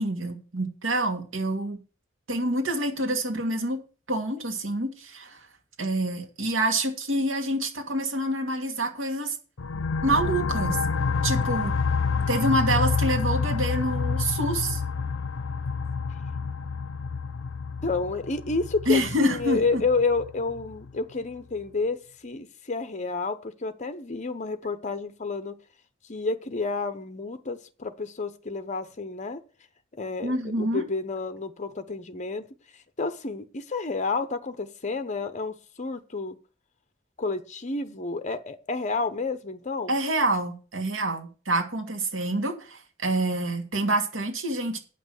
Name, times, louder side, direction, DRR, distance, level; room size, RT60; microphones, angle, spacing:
voice 1, 0.0-1.8 2.3-3.8 4.1-5.4 5.8-9.4 10.0-10.8 11.2-11.7 12.3-14.8 18.9-19.8 30.2-30.8 39.9-44.8, right 1 dB, 75° right, 4 dB, 2.4 m, -27 dB
sound 1, 9.6-20.9, left 5 dB, 75° left, 0.6 m, -28 dB
voice 2, 17.8-25.5 26.1-29.4 29.9-32.4 32.7-36.4 37.2-39.9, left 3 dB, 40° left, 10 dB, 0.9 m, -30 dB
9.1 x 6.0 x 7.8 m, 0.36 s
head